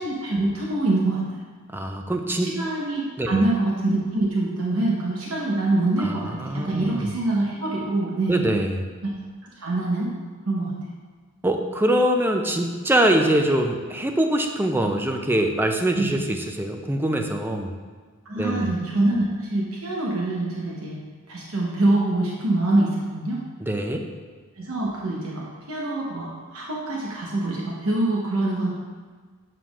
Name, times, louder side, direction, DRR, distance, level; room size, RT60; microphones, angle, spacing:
voice 1, 0.0-1.4 2.4-8.4 9.0-9.1 9.6-10.1 10.5-10.7 15.9-16.2 18.2-21.0 21.3-23.4 24.6-28.7, right 2 dB, 70° right, -4 dB, 1.0 m, -25 dB
voice 2, 1.7-2.5 3.2-3.4 6.0-7.1 8.3-8.9 11.4-17.7 18.4-18.7 23.6-24.1, right 1 dB, 10° right, 4 dB, 0.4 m, -23 dB
7.0 x 5.8 x 2.4 m, 1.5 s
head